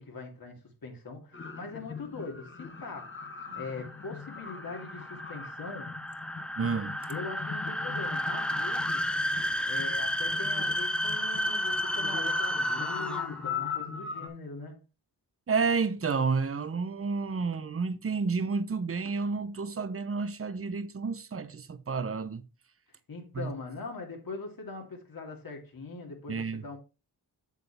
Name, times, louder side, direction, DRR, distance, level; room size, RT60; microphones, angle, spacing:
voice 1, 0.0-3.2 3.6-5.9 7.1-9.0 9.6-14.8 23.1-26.8, left 4 dB, 60° left, 2.6 m, -41 dB
sound 1, 1.3-14.3, left 6 dB, 30° left, 1.2 m, -41 dB
sound 2, 3.1-13.5, equal, ahead, 0.6 m, -32 dB
voice 2, 6.6-7.0 15.5-22.4 23.3-23.5 26.3-26.6, right 4 dB, 35° right, 0.8 m, -30 dB
8.2 x 6.7 x 3.4 m
cardioid pair, 70°, 40 cm